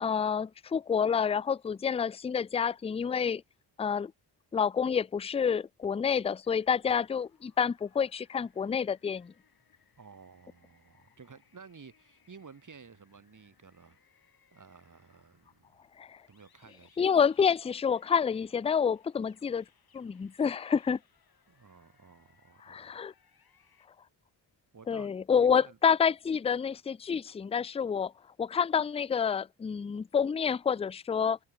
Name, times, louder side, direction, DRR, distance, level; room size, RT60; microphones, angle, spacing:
voice 1, 0.0-3.4 3.8-4.1 4.5-9.3 16.0-16.2 17.0-19.6 19.9-21.0 22.6-23.1 24.9-28.1 28.4-31.4, left 7 dB, 15° left, 0.3 m, -28 dB
sound 1, 6.4-23.9, left 6 dB, 55° left, 7.6 m, -68 dB
voice 2, 10.0-14.0 14.5-15.7 16.3-17.1 21.5-23.0 24.7-25.8, right 5 dB, 45° right, 4.9 m, -54 dB
cardioid pair, 90°, 43 cm